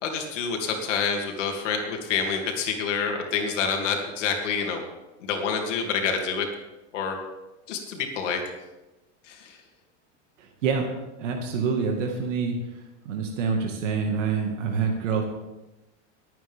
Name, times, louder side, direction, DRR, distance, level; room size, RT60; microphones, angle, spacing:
voice 1, 0.0-4.8 5.3-6.5 6.9-7.2 7.7-8.4 9.3-9.5, left 6 dB, 80° left, 2 dB, 2.9 m, -27 dB
voice 2, 10.4-10.9 11.2-12.6 13.1-15.2, right 5 dB, 85° right, 2 dB, 2.1 m, -26 dB
21.5 x 9.1 x 3.7 m, 1.0 s
supercardioid pair, 155°, 36 cm